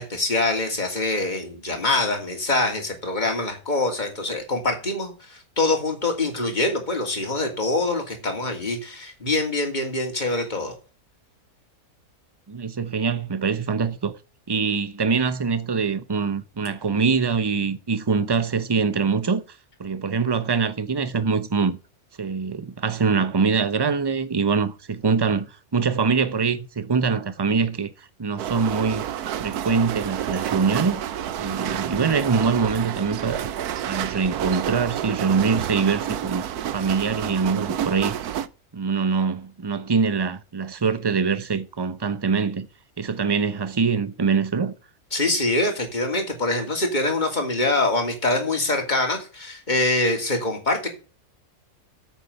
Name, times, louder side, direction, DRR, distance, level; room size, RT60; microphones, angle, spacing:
voice 1, 0.0-10.7 45.1-50.9, left 2 dB, 30° left, 2.9 m, -24 dB
voice 2, 12.5-14.2 14.5-19.4 19.8-21.8 22.2-25.5 25.7-29.0 29.4-31.0 31.4-33.5 33.9-38.3 38.7-42.7 43.0-44.7, right 5 dB, 25° right, 0.6 m, -24 dB
sound 1, 28.4-38.5, right 10 dB, 85° right, 1.3 m, -29 dB
8.7 x 8.3 x 6.9 m
omnidirectional pair, 1.6 m